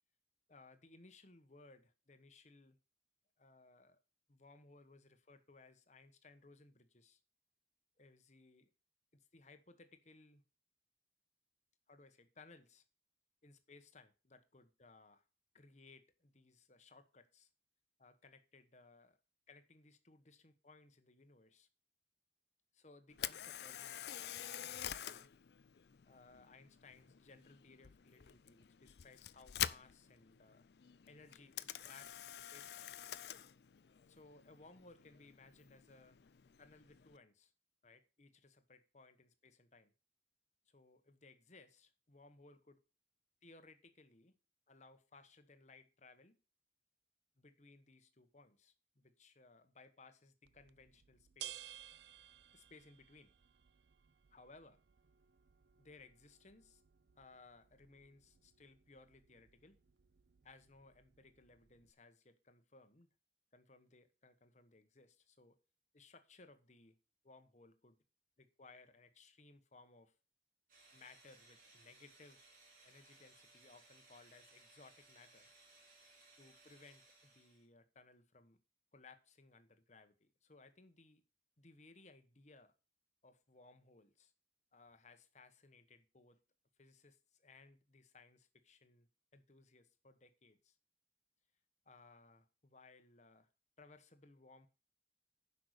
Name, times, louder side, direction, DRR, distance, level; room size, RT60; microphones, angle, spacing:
voice 1, 0.5-2.8 3.4-4.0 4.3-7.2 8.0-8.7 9.1-10.4 11.9-12.8 13.4-15.2 15.5-17.5 18.0-19.2 19.5-21.7 22.7-25.3 26.0-30.7 31.1-32.9 34.1-36.2 36.6-37.5 37.8-39.9 40.7-42.8 43.4-44.3 44.7-46.4 47.4-51.6 52.5-53.3 54.3-54.8 55.8-56.8 57.2-59.8 60.4-63.1 63.5-65.6 65.9-67.0 67.2-68.0 68.4-70.1 70.9-72.5 72.8-75.5 76.4-78.6 78.9-81.2 81.6-82.7 83.2-84.3 84.7-86.4 86.8-90.8 91.8-93.5 93.8-94.7, left 3 dB, 40° left, 1.2 m, -62 dB
Camera, 23.1-37.2, left 11 dB, 65° left, 0.5 m, -47 dB
sound 1, 50.4-61.9, right 12 dB, 65° right, 0.5 m, -58 dB
sound 2, 70.7-77.7, right 3 dB, 50° right, 4.5 m, -64 dB
10.5 x 5.8 x 6.6 m
head